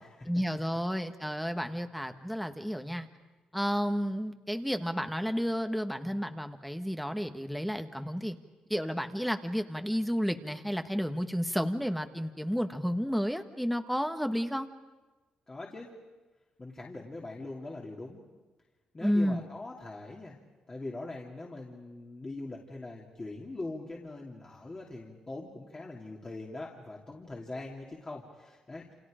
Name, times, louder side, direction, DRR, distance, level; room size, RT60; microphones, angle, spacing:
voice 1, 0.3-3.1 3.5-8.4 8.7-14.7 19.0-19.4, equal, ahead, 7 dB, 1.5 m, -31 dB
voice 2, 15.5-15.9 16.6-18.2 18.9-20.3 20.7-28.9, left 2 dB, 30° left, -2 dB, 2.8 m, -42 dB
29.0 x 27.5 x 5.1 m, 1.2 s
cardioid pair, 80°, 2 cm